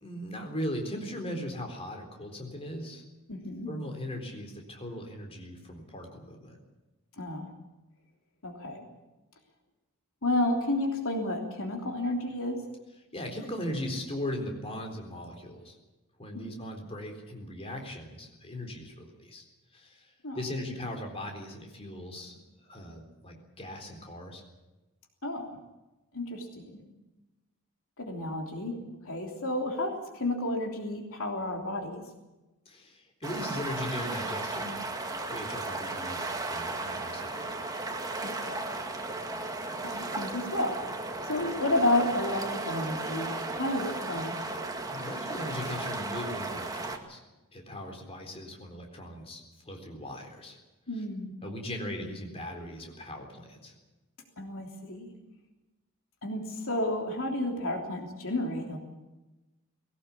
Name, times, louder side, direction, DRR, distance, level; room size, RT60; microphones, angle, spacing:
voice 1, 0.0-3.0 3.7-6.6 13.1-15.8 16.2-19.4 19.7-20.1 20.3-24.4 32.7-34.8 35.3-37.5 44.9-47.2 47.5-50.6 51.4-53.7, left 1 dB, 25° left, 3 dB, 3.9 m, -39 dB
voice 2, 3.3-3.7 7.2-7.5 8.4-8.8 10.2-12.6 16.3-16.5 20.2-20.4 25.2-25.5 26.1-26.8 28.0-28.8 29.0-32.0 38.2-38.6 39.8-40.8 41.3-44.4 50.9-51.3 54.4-55.1 56.2-58.8, left 1 dB, 65° left, 2 dB, 3.3 m, -31 dB
sound 1, 33.2-47.0, right 2 dB, 15° right, 2.0 m, -35 dB
20.0 x 18.0 x 8.6 m, 1.1 s
head